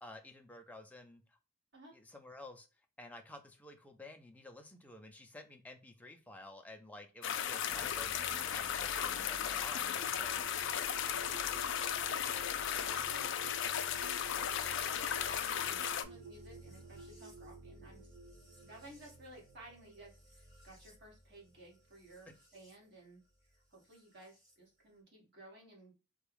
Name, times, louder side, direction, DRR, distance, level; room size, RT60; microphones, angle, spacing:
voice 1, 0.0-1.4 1.9-2.7 3.0-10.5, left 2 dB, 5° left, 4 dB, 0.5 m, -52 dB
sound 1, 7.2-16.0, left 9 dB, 65° left, 0.4 m, -36 dB
sound 2, 7.7-22.8 23.9-24.5, right 2 dB, 35° right, 1.7 m, -53 dB
voice 2, 12.1-18.0 18.6-23.2 23.5-25.9, right 1 dB, 55° right, -3 dB, 1.8 m, -56 dB
3.5 x 2.3 x 3.3 m, 0.31 s
head